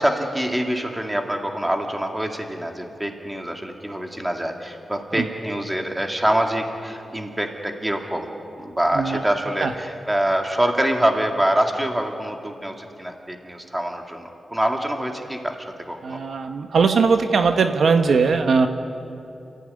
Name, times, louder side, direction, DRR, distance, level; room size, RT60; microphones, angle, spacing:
voice 1, 0.0-8.3 8.6-14.2 14.5-15.6 15.9-16.2, right 1 dB, 10° right, 3 dB, 2.3 m, -25 dB
voice 2, 8.9-9.3 9.6-9.7 16.0-18.7, right 5 dB, 65° right, 6 dB, 1.2 m, -19 dB
29.0 x 15.5 x 9.9 m, 2.8 s
wide cardioid pair, 145°, 0 cm